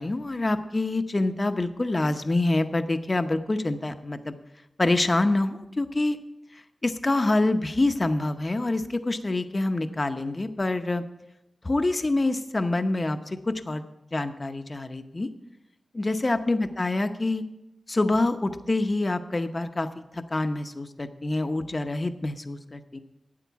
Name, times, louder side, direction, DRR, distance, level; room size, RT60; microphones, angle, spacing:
voice 1, 0.0-4.3 4.8-6.2 6.8-11.0 11.6-13.8 14.1-15.3 15.9-17.4 17.9-19.9 20.1-23.0, left 2 dB, 30° left, 8 dB, 0.8 m, -26 dB
12.5 x 9.0 x 4.7 m, 0.89 s
wide cardioid pair, 90°, 0 cm